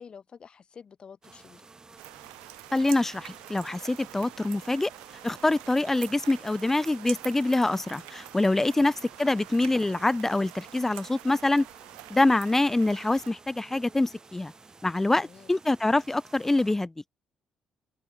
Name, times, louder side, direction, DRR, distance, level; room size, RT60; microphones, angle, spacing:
voice 1, 0.0-1.7 15.1-15.5, left 6 dB, 45° left, 1.4 m, -49 dB
sound 1, 1.2-16.8, right 4 dB, 30° right, 6.7 m, -52 dB
sound 2, 2.0-13.3, right 40 dB or more, 70° right, 0.9 m, -46 dB
voice 2, 2.7-4.9 5.2-11.7 12.1-14.5 14.8-16.9, left 2 dB, 15° left, 0.3 m, -25 dB
figure-of-eight pair, 45°, 2 cm